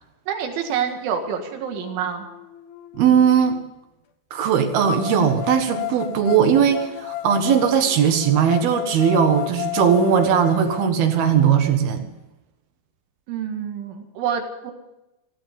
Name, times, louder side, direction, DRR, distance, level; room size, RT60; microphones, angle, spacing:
voice 1, 0.3-2.3 13.3-14.7, right 7 dB, 90° right, 5 dB, 4.3 m, -27 dB
sound 1, 1.0-1.1 1.7-3.6 4.8-10.9, left 13 dB, 85° left, 2.0 m, -32 dB
voice 2, 2.9-3.6 4.3-12.1, right 7 dB, 65° right, 6 dB, 3.0 m, -18 dB
16.5 x 15.5 x 5.3 m, 0.94 s
omnidirectional pair, 5.3 m